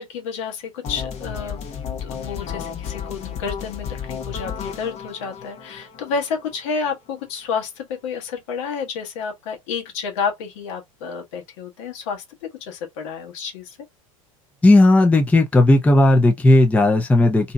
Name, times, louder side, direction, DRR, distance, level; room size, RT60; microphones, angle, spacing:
voice 1, 0.0-1.6 2.0-13.8, left 5 dB, 60° left, 1.2 m, -30 dB
sound 1, 0.8-6.8, left 7 dB, 35° left, 0.8 m, -32 dB
voice 2, 14.6-17.5, left 2 dB, 10° left, 0.6 m, -14 dB
2.7 x 2.7 x 2.2 m
hypercardioid pair, 85°, 18 cm